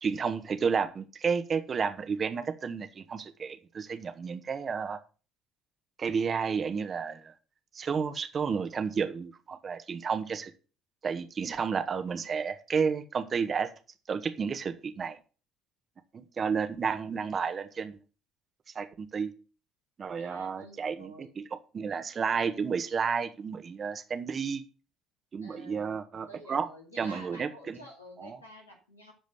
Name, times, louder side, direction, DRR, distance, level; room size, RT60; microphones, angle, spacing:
voice 1, 0.0-5.0 6.0-7.3 7.7-10.5 11.0-13.7 14.1-15.2 16.1-18.0 18.7-19.3 20.0-21.4 21.7-24.6 25.3-26.7 27.0-27.8 28.2-28.4, right 6 dB, 40° right, 9 dB, 1.6 m, -31 dB
voice 2, 20.2-21.3 25.4-26.0 26.3-29.1, equal, 90° left, 1 dB, 2.3 m, -50 dB
12.5 x 5.1 x 8.1 m, 0.36 s
hypercardioid pair, 55°, 0 cm